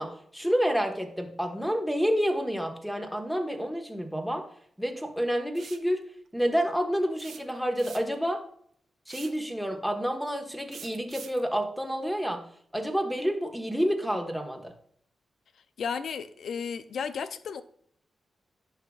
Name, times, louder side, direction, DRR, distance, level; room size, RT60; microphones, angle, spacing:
voice 1, 0.0-4.4 4.8-6.0 6.3-8.4 9.1-12.4 12.7-14.7, equal, ahead, 3 dB, 1.4 m, -29 dB
sound 1, 5.5-5.9 7.2-8.3 9.1-9.4 10.7-11.4, right 7 dB, 75° right, 0.6 m, -45 dB
voice 2, 15.8-17.6, left 6 dB, 75° left, 13 dB, 0.6 m, -33 dB
11.0 x 5.7 x 2.4 m, 0.63 s
cardioid pair, 75°, 0 cm